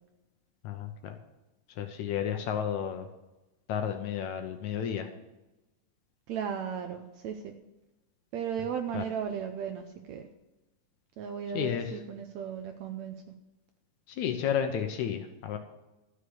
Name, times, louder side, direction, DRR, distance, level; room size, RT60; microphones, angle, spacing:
voice 1, 0.6-1.2 1.8-3.1 3.7-5.1 8.9-9.0 11.5-11.9 14.1-15.6, left 8 dB, 70° left, 6 dB, 1.9 m, -32 dB
voice 2, 6.3-7.5 8.3-10.2 11.2-13.1, right 7 dB, 75° right, 6 dB, 1.7 m, -35 dB
12.5 x 6.5 x 7.9 m, 1.0 s
omnidirectional pair, 3.9 m